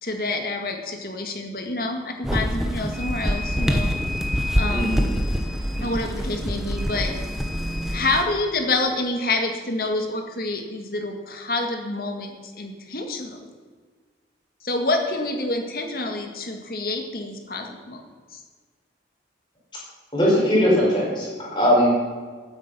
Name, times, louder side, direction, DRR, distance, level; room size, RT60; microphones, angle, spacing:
voice 1, 0.0-3.9 4.5-5.0 5.8-7.1 7.9-13.4 14.6-18.0 18.3-18.4, left 2 dB, 55° left, 4 dB, 1.9 m, -27 dB
sound 1, 2.2-8.2, equal, 5° right, 1.0 m, -25 dB
voice 2, 4.7-5.1 20.1-21.3 21.5-21.9, equal, 25° left, -5 dB, 5.1 m, -19 dB
16.0 x 9.2 x 5.7 m, 1.5 s
head